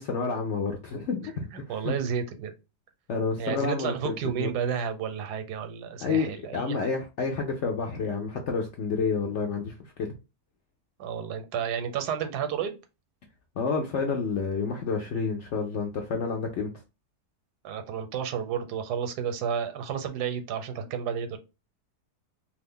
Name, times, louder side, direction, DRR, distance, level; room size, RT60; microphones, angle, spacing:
voice 1, 0.0-1.5 1.8-2.0 3.1-4.5 6.0-10.1 13.6-16.7, left 5 dB, 70° left, 0.6 m, -29 dB
voice 2, 1.5-2.5 3.4-6.9 11.0-12.8 17.6-21.4, right 7 dB, 85° right, 1.2 m, -31 dB
2.6 x 2.4 x 3.5 m
omnidirectional pair, 1.7 m